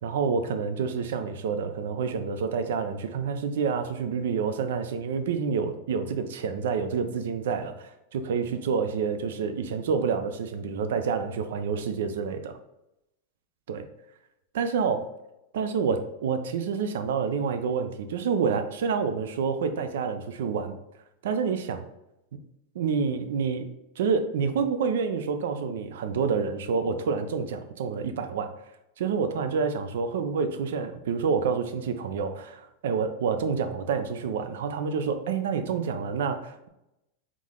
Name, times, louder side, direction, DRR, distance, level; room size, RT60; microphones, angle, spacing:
voice 1, 0.0-12.5 13.7-13.9 14.5-15.1 15.5-20.8 21.2-21.9 22.7-23.7 24.0-28.5 29.0-36.7, right 5 dB, 80° right, 8 dB, 0.5 m, -28 dB
3.7 x 3.1 x 3.7 m, 0.87 s
supercardioid pair, 175°, 0 cm